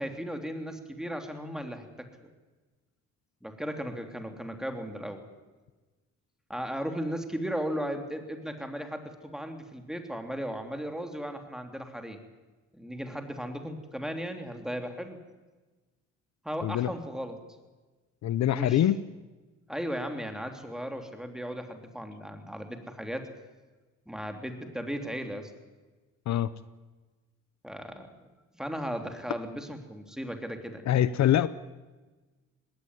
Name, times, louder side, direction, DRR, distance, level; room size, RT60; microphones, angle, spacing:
voice 1, 0.0-2.3 3.4-5.2 6.5-12.2 12.7-15.2 16.4-17.4 18.5-18.8 19.7-23.3 24.1-25.5 27.6-28.1 28.5-30.9, equal, ahead, 5 dB, 3.2 m, -36 dB
voice 2, 18.2-19.0 26.3-26.5 30.9-31.5, left 11 dB, 65° left, 15 dB, 0.8 m, -24 dB
20.0 x 17.5 x 9.7 m, 1.3 s
cardioid pair, 90°, 30 cm